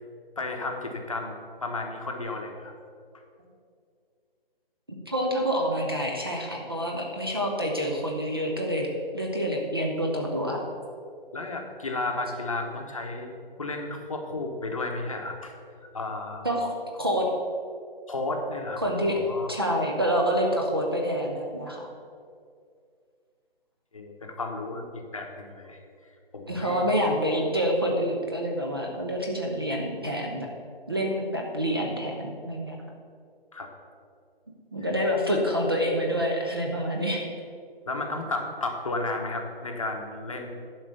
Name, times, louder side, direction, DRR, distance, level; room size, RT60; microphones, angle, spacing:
voice 1, 0.4-1.3 1.6-2.7 11.3-13.3 13.6-15.5 15.9-16.5 18.1-19.5 23.9-25.8 26.3-26.9 33.5-33.7 37.9-40.5, left 2 dB, 35° left, 2 dB, 1.0 m, -33 dB
voice 2, 5.1-8.9 9.1-10.6 16.4-17.3 18.8-19.1 19.5-21.8 26.5-30.5 30.9-32.8 34.7-37.3, equal, 25° right, 0 dB, 0.7 m, -27 dB
11.0 x 4.9 x 6.8 m, 2.3 s
hypercardioid pair, 175°, 30 cm